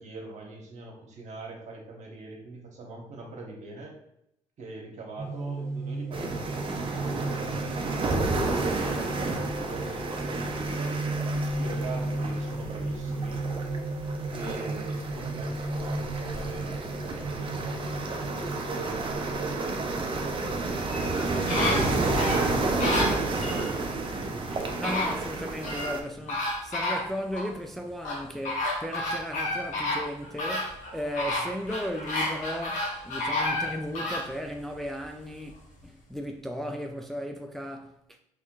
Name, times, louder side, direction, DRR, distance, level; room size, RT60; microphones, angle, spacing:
voice 1, 0.0-3.9 4.6-11.0 11.6-13.4 14.3-17.8 18.2-20.7 22.6-24.9, right 2 dB, 60° right, 1.2 m, -42 dB
sound 1, 5.2-24.4, right 2 dB, 25° right, 1.1 m, -35 dB
sound 2, 6.1-26.0, right 3 dB, 40° right, 0.6 m, -31 dB
voice 2, 9.0-9.4 21.6-22.1 24.1-24.4 24.8-35.5 35.8-38.0, equal, ahead, 0.4 m, -36 dB
sound 3, 20.8-23.7 24.4-24.5 24.8-26.0 26.3-27.5 28.0-34.3 34.8-34.9, left 2 dB, 70° left, 1.2 m, -30 dB
4.3 x 3.1 x 2.4 m
supercardioid pair, 75°, 14 cm